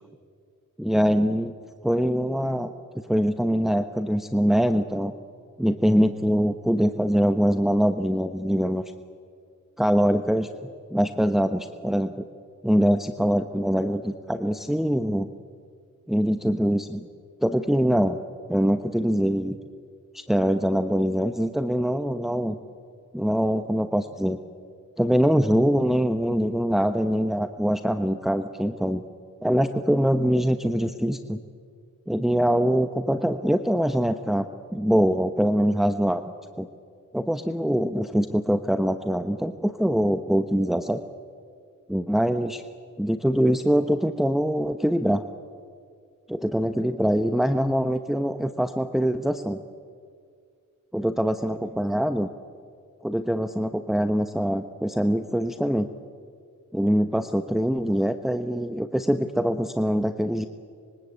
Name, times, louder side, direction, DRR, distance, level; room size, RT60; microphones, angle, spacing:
voice 1, 0.8-1.5 1.8-5.1 5.6-8.8 9.8-10.5 10.9-12.3 12.6-15.3 16.1-17.1 17.4-18.2 18.5-19.6 20.1-22.6 23.1-24.4 25.0-29.0 29.4-31.4 32.1-36.3 36.6-36.7 37.1-41.0 41.9-42.6 43.0-45.2 46.3-49.6 50.9-52.3 53.0-55.9 56.7-60.5, equal, ahead, 8 dB, 1.0 m, -23 dB
25.5 x 23.0 x 8.5 m, 2.2 s
cardioid pair, 60°, 32 cm